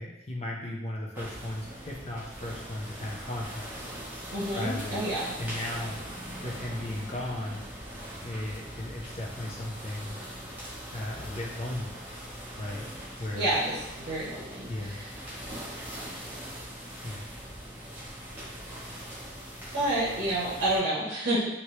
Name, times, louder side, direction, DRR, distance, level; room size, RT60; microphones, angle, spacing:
voice 1, 0.0-3.8 4.5-5.1 5.4-5.9 6.4-7.6 8.2-10.2 10.9-12.0 12.6-12.9 13.2-13.5 14.7-15.1 17.0-17.3, left 1 dB, 30° left, -2 dB, 0.5 m, -36 dB
sound 1, 1.1-20.8, equal, 10° right, 0.8 m, -41 dB
voice 2, 4.3-5.3 13.3-15.1 19.7-21.5, right 1 dB, 60° right, -8 dB, 0.8 m, -29 dB
3.0 x 2.8 x 3.0 m, 0.91 s
head